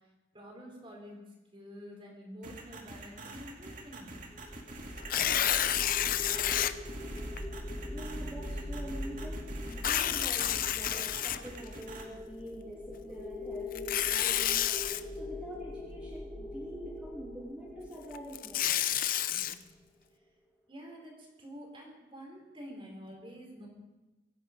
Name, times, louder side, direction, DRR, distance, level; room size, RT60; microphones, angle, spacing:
voice 1, 0.3-1.2 1.5-4.2 19.2-19.5 20.7-23.7, equal, 30° right, 0 dB, 4.3 m, -48 dB
sound 1, 2.4-12.0, right 2 dB, 45° right, 2.3 m, -46 dB
sound 2, 4.1-19.2, left 1 dB, 15° left, 2.3 m, -42 dB
Tearing, 5.0-6.7 7.4-7.5 9.7-11.8 13.7-15.0 18.1-19.5, left 11 dB, 50° left, 0.6 m, -29 dB
voice 2, 7.8-9.4 9.7-14.6 15.1-18.7, equal, 5° right, -7 dB, 3.1 m, -45 dB
24.0 x 10.0 x 5.3 m, 1.1 s
head